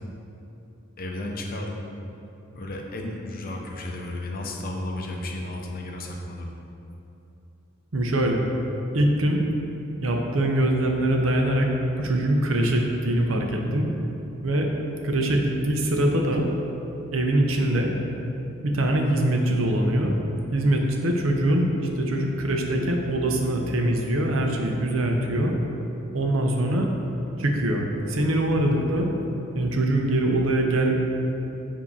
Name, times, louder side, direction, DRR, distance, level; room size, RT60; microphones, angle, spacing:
voice 1, 1.0-1.8 2.5-6.5, left 1 dB, 45° left, 1 dB, 0.7 m, -33 dB
voice 2, 7.9-8.4 8.9-9.4 10.0-11.7 12.0-13.9 14.4-14.7 15.0-16.4 17.1-17.9 18.6-20.1 20.5-25.6 26.1-26.9 27.4-29.1 29.5-30.9, right 1 dB, 75° right, 2 dB, 0.7 m, -23 dB
7.3 x 2.8 x 5.4 m, 2.9 s
head